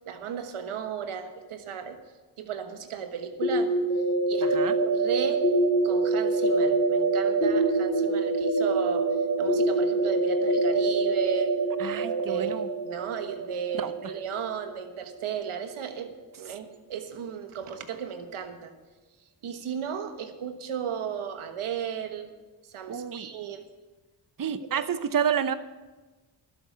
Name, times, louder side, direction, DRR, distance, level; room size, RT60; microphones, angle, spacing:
voice 1, 0.0-2.0 2.4-3.7 4.3-5.4 5.8-9.1 9.4-11.5 11.9-12.6 12.8-18.7 19.4-22.3 22.6-23.6 24.7-24.9, right 7 dB, 85° right, 7 dB, 1.4 m, -35 dB
sound 1, 3.4-15.1, right 2 dB, 25° left, 3.7 m, -25 dB
voice 2, 4.4-4.7 11.8-12.7 13.7-13.9 22.9-23.3 24.4-25.6, right 8 dB, 45° right, 12 dB, 0.9 m, -29 dB
12.0 x 7.8 x 8.2 m, 1.2 s
cardioid pair, 55°, 49 cm